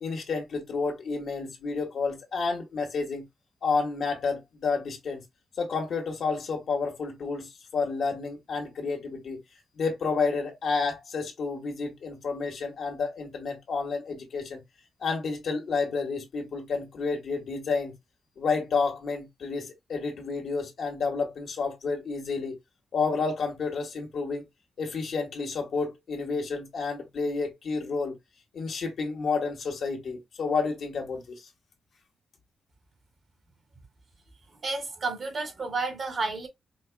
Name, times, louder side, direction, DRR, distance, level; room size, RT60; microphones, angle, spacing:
voice 1, 0.0-3.2 3.6-5.2 5.6-9.4 9.8-14.6 15.0-17.9 18.4-22.6 22.9-24.5 24.8-28.1 28.5-31.5, left 4 dB, 70° left, 1.6 m, -30 dB
voice 2, 34.5-36.5, right 3 dB, 55° right, 2.1 m, -31 dB
5.3 x 2.4 x 2.3 m
cardioid pair, 70°, 0 cm